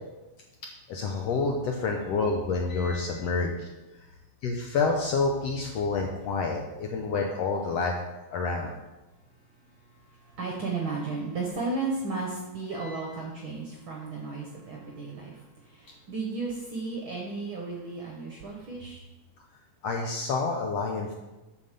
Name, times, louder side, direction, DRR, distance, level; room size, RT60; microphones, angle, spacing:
voice 1, 0.9-3.7 4.4-7.9 8.3-8.7 12.7-13.0 19.8-21.1, left 4 dB, 70° left, 2 dB, 1.6 m, -28 dB
voice 2, 9.5-19.1, right 3 dB, 60° right, 0 dB, 1.3 m, -34 dB
7.8 x 5.2 x 6.6 m, 1.1 s
omnidirectional pair, 3.7 m